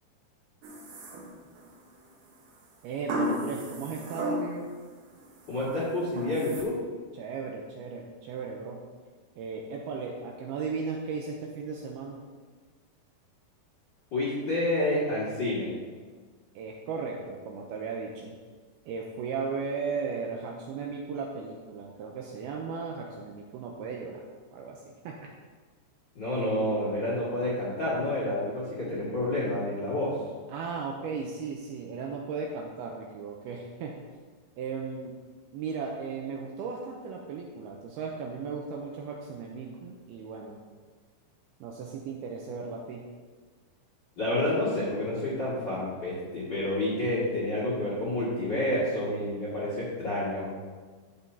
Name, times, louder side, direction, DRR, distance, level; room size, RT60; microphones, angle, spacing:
sound 1, 0.6-1.7 3.1-4.8 5.2-5.6 6.2-6.6, equal, 70° right, 2.0 m, -34 dB
voice 1, 2.8-4.7 7.1-8.9 9.4-12.2 16.6-18.4 18.9-24.2 24.5-25.3 30.5-34.0 34.6-35.2 35.5-40.6 41.6-43.1, right 5 dB, 85° right, 0 dB, 2.3 m, -36 dB
voice 2, 5.5-6.8 14.1-15.7 26.1-30.1 44.2-50.5, left 1 dB, 45° left, -8 dB, 1.5 m, -29 dB
12.0 x 7.0 x 2.8 m, 1.5 s
omnidirectional pair, 5.1 m